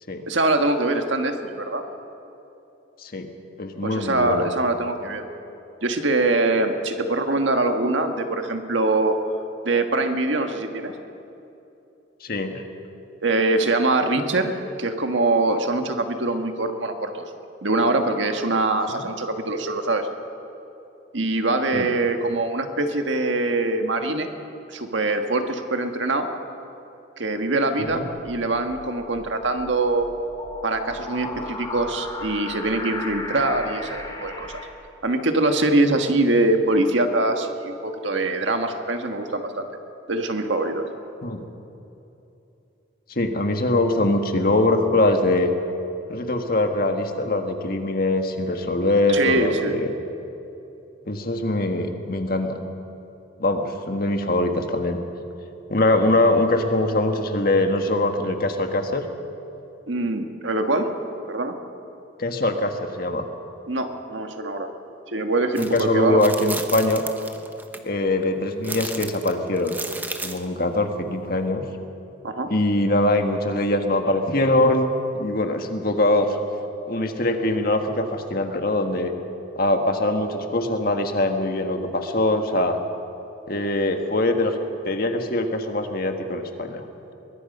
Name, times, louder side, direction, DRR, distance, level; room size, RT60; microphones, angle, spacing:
voice 1, 0.3-1.8 3.8-5.2 5.8-9.2 9.6-10.9 13.2-14.5 14.8-17.3 17.6-20.1 21.1-24.3 24.7-26.3 27.2-30.1 30.6-34.6 35.0-39.7 40.1-40.9 49.1-49.7 59.9-61.0 61.3-61.5 63.7-64.7 65.1-66.5 72.2-72.5, right 2 dB, 75° right, 5 dB, 1.6 m, -23 dB
voice 2, 3.6-4.4 12.2-12.6 18.9-19.1 21.7-21.9 27.8-28.1 41.2-41.4 43.1-45.5 46.1-49.9 51.0-52.6 53.4-55.0 55.7-59.1 62.2-63.3 65.6-67.1 67.8-69.8 70.2-71.6 72.5-76.3 76.9-79.1 79.5-82.8 83.5-84.5 84.8-86.8, left 2 dB, 50° left, 5 dB, 1.6 m, -22 dB
sound 1, 28.2-34.7, left 2 dB, 20° left, 2.4 m, -36 dB
sound 2, 65.6-65.8 66.2-67.8 68.6-70.5, right 3 dB, 10° right, 0.9 m, -33 dB
23.0 x 21.0 x 5.5 m, 2.9 s
head